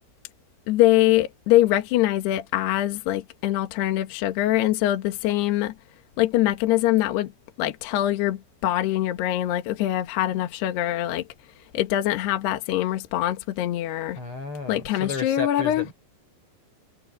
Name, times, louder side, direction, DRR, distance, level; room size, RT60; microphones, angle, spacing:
voice 1, 0.7-5.7 6.2-7.3 7.6-11.3 11.7-14.2 14.7-15.9, left 14 dB, 70° left, 3.3 m, -23 dB
voice 2, 14.1-15.9, left 5 dB, 30° left, 5.0 m, -33 dB
omnidirectional pair, 5.1 m